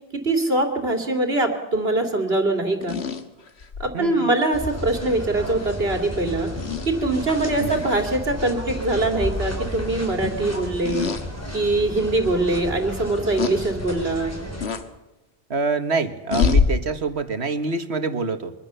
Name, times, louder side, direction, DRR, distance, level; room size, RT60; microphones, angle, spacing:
voice 1, 0.2-2.9 3.8-6.5 6.9-11.1 11.5-14.3, right 2 dB, 70° right, 5 dB, 2.9 m, -23 dB
sound 1, 2.8-3.9 5.6-5.7 6.6-6.9 7.7-7.9 8.3-8.5 10.8-11.2 11.8-11.9 13.4-13.6 14.6-14.8 16.3-16.7, left 5 dB, 90° left, 1.8 m, -24 dB
voice 2, 3.9-4.3 7.6-7.8 15.5-18.5, right 4 dB, 90° right, 9 dB, 1.9 m, -26 dB
sound 2, 4.5-14.7, left 1 dB, 15° left, 4.7 m, -32 dB
24.5 x 24.0 x 6.9 m, 0.98 s
omnidirectional pair, 1.1 m